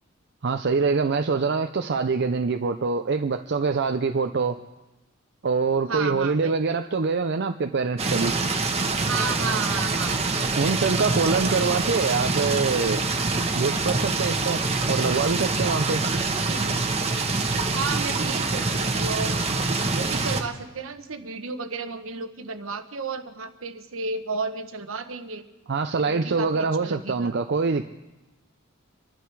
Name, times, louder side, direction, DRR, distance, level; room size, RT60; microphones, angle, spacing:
voice 1, 0.4-4.6 5.4-8.3 10.6-13.0 13.5-14.6 14.9-16.0 25.7-27.8, right 4 dB, 55° right, 6 dB, 0.6 m, -24 dB
voice 2, 5.9-6.8 9.0-10.4 16.4-16.9 17.7-19.4 19.8-25.4 26.0-27.3, right 4 dB, 75° right, 9 dB, 1.1 m, -33 dB
sound 1, 8.0-20.4, right 3 dB, 30° right, 1.2 m, -25 dB
26.0 x 11.5 x 4.7 m, 1.0 s
head